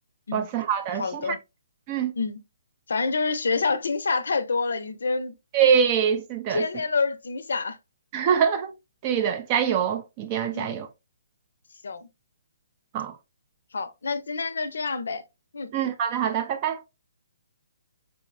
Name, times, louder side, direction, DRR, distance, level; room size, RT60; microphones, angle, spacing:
voice 1, 0.3-1.4 1.9-2.1 5.5-6.6 8.1-8.7 9.0-10.9 12.9-13.2 15.7-16.8, right 7 dB, 30° right, 0.3 m, -24 dB
voice 2, 1.0-1.4 2.2-2.4 2.9-5.4 6.5-7.8 10.5-10.8 11.8-12.1 13.7-15.2 15.5-15.7, left 4 dB, 75° left, 0.5 m, -27 dB
4.6 x 2.0 x 2.4 m
hypercardioid pair, 150°, 0 cm